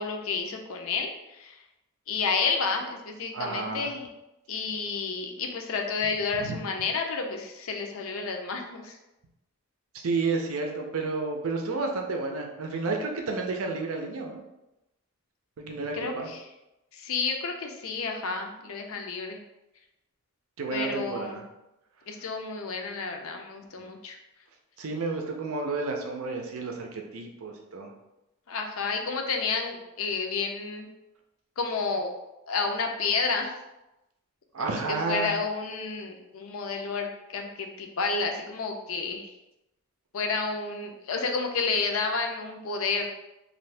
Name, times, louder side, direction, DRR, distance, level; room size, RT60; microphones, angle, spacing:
voice 1, 0.0-1.6 2.1-4.1 4.5-9.0 15.9-16.4 16.9-19.4 20.7-21.4 22.1-24.2 28.5-30.9 31.6-32.1 32.5-33.6 34.6-39.3 40.1-43.1, left 4 dB, 65° left, 3 dB, 0.5 m, -30 dB
voice 2, 3.3-3.9 6.3-6.6 10.0-14.4 15.6-16.3 20.6-21.4 23.8-23.9 24.8-27.9 34.5-35.3, right 3 dB, 70° right, 2 dB, 0.5 m, -31 dB
2.7 x 2.6 x 3.2 m, 0.95 s
head